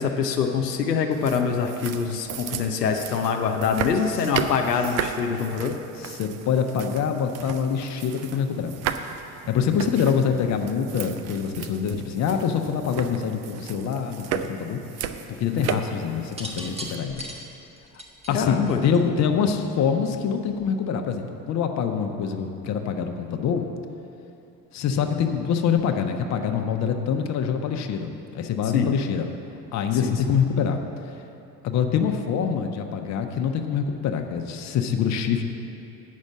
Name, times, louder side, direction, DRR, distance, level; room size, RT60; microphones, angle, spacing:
voice 1, 0.0-5.7 18.3-18.8 28.7-28.9 30.0-30.1, left 6 dB, 80° left, 3 dB, 0.8 m, -24 dB
sound 1, 1.1-16.9, right 8 dB, 35° right, 0.5 m, -35 dB
voice 2, 6.0-8.7 9.5-14.8 15.3-17.2 18.3-23.7 24.7-29.3 29.7-30.8 31.6-35.4, left 7 dB, 35° left, 5 dB, 0.9 m, -25 dB
sound 2, 16.2-19.4 20.5-20.8, right 1 dB, 15° right, 1.2 m, -38 dB
8.5 x 6.3 x 7.3 m, 2.9 s
figure-of-eight pair, 65°, 48 cm